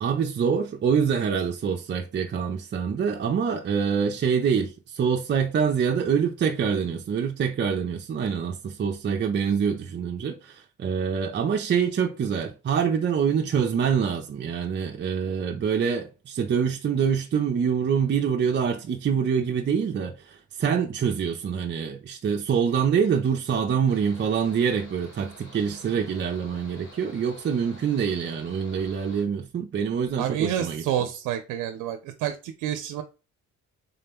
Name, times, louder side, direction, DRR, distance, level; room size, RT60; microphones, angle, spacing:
voice 1, 0.0-30.8, right 7 dB, 35° right, 0.5 m, -25 dB
Mechanical fan, 23.9-29.2, equal, 60° left, 2.4 m, -49 dB
voice 2, 30.2-33.0, right 10 dB, 90° right, 0.5 m, -29 dB
3.7 x 2.8 x 3.5 m
cardioid pair, 90°, 30 cm